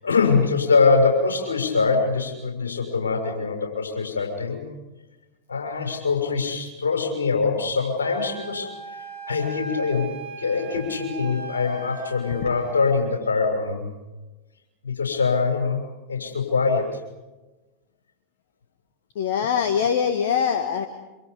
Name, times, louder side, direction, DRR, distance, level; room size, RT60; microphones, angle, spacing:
voice 1, 0.0-4.6 5.5-8.7 9.3-10.1 10.4-13.9 14.8-15.8 16.1-17.0, left 4 dB, 80° left, 2 dB, 6.5 m, -23 dB
Wind instrument woodwind instrument, 8.0-13.0, right 4 dB, 75° right, 5.9 m, -38 dB
voice 2, 19.1-20.9, left 7 dB, 65° left, 8 dB, 1.7 m, -23 dB
27.5 x 26.5 x 5.4 m, 1.1 s
figure-of-eight pair, 90°, 0 cm